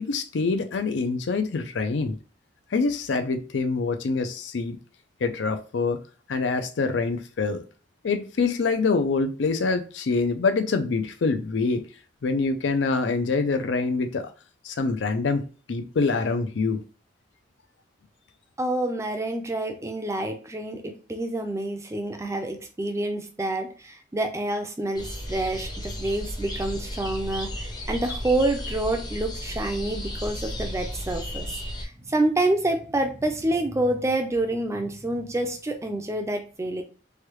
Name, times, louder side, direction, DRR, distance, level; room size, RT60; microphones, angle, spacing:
voice 1, 0.0-2.2 2.7-4.8 5.2-6.0 6.3-7.6 8.0-11.8 12.2-14.3 14.6-16.8, left 4 dB, 75° left, 7 dB, 0.5 m, -25 dB
voice 2, 18.6-31.5 31.8-36.8, right 1 dB, 15° right, 5 dB, 0.4 m, -27 dB
sound 1, 24.9-31.8, equal, 25° left, 0.6 m, -34 dB
3.2 x 2.2 x 3.0 m, 0.38 s
head